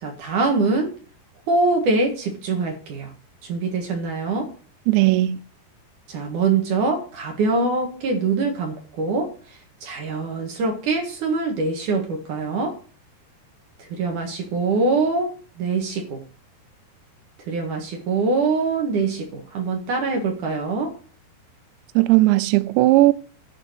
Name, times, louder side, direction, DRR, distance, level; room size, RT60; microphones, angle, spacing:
voice 1, 0.0-0.9 1.5-3.1 3.4-4.5 6.1-9.3 9.8-12.8 13.8-16.2 17.5-21.0, right 3 dB, 55° right, 2.7 m, -24 dB
voice 2, 4.9-5.4 22.0-23.1, right 17 dB, 85° right, 2.9 m, -16 dB
11.0 x 4.5 x 7.9 m
omnidirectional pair, 5.0 m